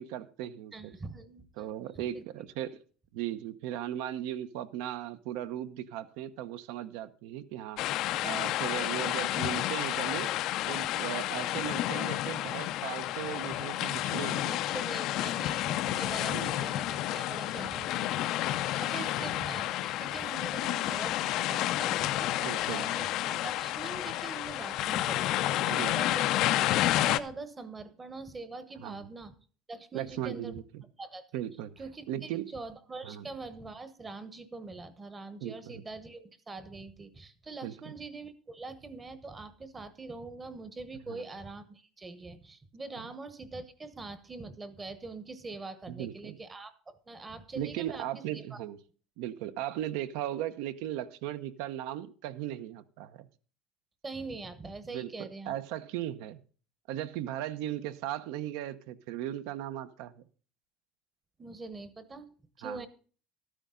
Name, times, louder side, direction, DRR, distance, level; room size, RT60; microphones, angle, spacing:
voice 1, 0.0-1.0 1.6-2.8 3.1-7.9 8.2-10.3 10.7-14.6 16.3-16.6 19.0-19.1 22.4-22.9 25.7-25.9 28.8-29.0 29.9-30.8 31.3-31.7 32.1-32.5 33.0-33.3 35.4-35.8 37.6-37.7 41.1-41.2 43.0-43.1 45.9-46.4 47.5-48.8 49.2-53.3 54.9-56.4 56.9-60.2 62.6-62.9, right 12 dB, 65° right, 0.9 m, -37 dB
voice 2, 0.7-1.7 2.1-2.2 14.5-26.3 26.7-29.3 29.7-30.6 31.0-31.2 31.8-48.6 54.0-55.5 61.4-62.3 62.6-62.9, right 3 dB, 15° right, 1.0 m, -43 dB
sound 1, 7.8-27.2, left 14 dB, 45° left, 0.5 m, -30 dB
13.0 x 9.8 x 3.8 m
cardioid pair, 175°, 0 cm